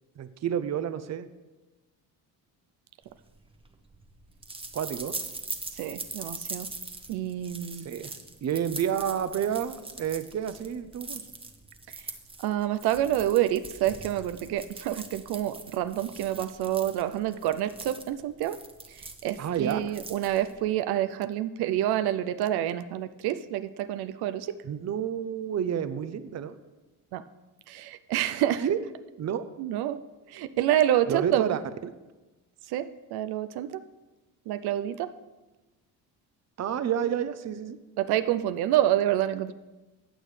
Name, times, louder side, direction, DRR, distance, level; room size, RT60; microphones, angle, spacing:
voice 1, 0.2-1.3 4.7-5.1 7.8-8.1 8.4-11.2 19.4-19.8 24.6-26.5 28.6-28.8 29.2-29.5 31.1-31.9 36.6-37.8, right 9 dB, 45° right, 12 dB, 0.7 m, -30 dB
sound 1, 3.2-20.7, right 3 dB, 15° right, 1.0 m, -42 dB
voice 2, 5.7-6.7 7.1-7.9 12.4-18.6 18.9-24.6 27.1-27.2 27.7-28.7 29.6-30.0 30.3-31.6 32.7-33.8 34.5-35.1 38.0-39.5, right 12 dB, 80° right, 12 dB, 0.6 m, -28 dB
15.0 x 8.8 x 3.3 m, 1.1 s
cardioid pair, 105°, 37 cm